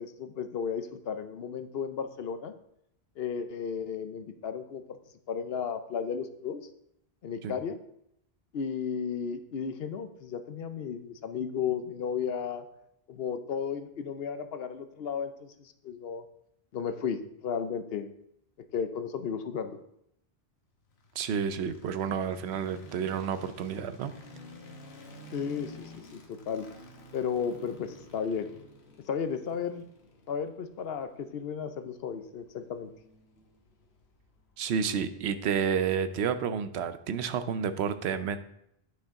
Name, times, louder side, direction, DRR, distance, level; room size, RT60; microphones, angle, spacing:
voice 1, 0.0-2.5 3.2-5.0 5.3-6.6 7.2-7.8 8.5-12.6 13.1-16.2 16.7-18.1 18.7-19.8 25.3-26.7 27.1-28.5 29.0-29.8 30.3-32.9, left 7 dB, 70° left, 9 dB, 0.9 m, -34 dB
sound 1, 20.9-35.0, left 1 dB, 85° left, 1.3 m, -52 dB
voice 2, 21.2-24.1 34.6-38.4, right 7 dB, 85° right, 11 dB, 0.9 m, -30 dB
10.0 x 5.8 x 3.6 m, 0.75 s
omnidirectional pair, 1.1 m